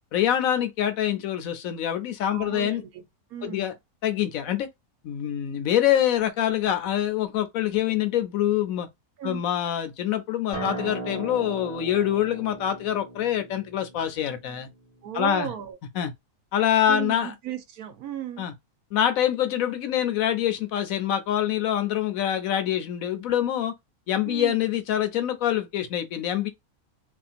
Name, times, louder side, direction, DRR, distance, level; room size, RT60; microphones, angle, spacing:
voice 1, 0.1-2.8 3.4-3.7 4.0-4.7 5.0-8.9 9.2-14.7 15.1-15.5 16.0-16.1 16.5-17.3 18.4-18.5 18.9-23.7 24.1-26.5, left 11 dB, 70° left, 1.0 m, -25 dB
voice 2, 2.3-3.0 3.3-3.8 9.2-9.4 15.0-15.8 16.9-18.5 24.3-24.6, right 10 dB, 75° right, 1.2 m, -35 dB
Acoustic guitar, 10.5-15.7, right 2 dB, 10° left, 1.4 m, -38 dB
2.9 x 2.7 x 2.4 m
omnidirectional pair, 1.6 m